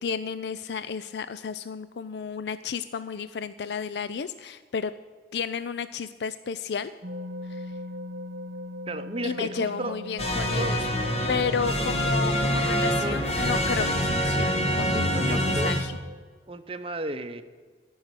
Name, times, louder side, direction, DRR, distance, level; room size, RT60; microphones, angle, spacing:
voice 1, 0.0-4.9 5.3-6.9 7.4-7.8 9.2-10.9 11.3-15.9, left 6 dB, 75° left, 13 dB, 0.4 m, -32 dB
sound 1, 7.0-16.2, left 1 dB, 55° right, 1.0 m, -41 dB
voice 2, 8.9-10.0 10.6-10.8 13.0-13.2 14.9-15.7 16.5-17.4, right 1 dB, 30° right, 9 dB, 0.7 m, -33 dB
sound 2, 10.2-15.8, equal, 35° left, 1.4 m, -25 dB
14.0 x 6.3 x 9.0 m, 1.5 s
head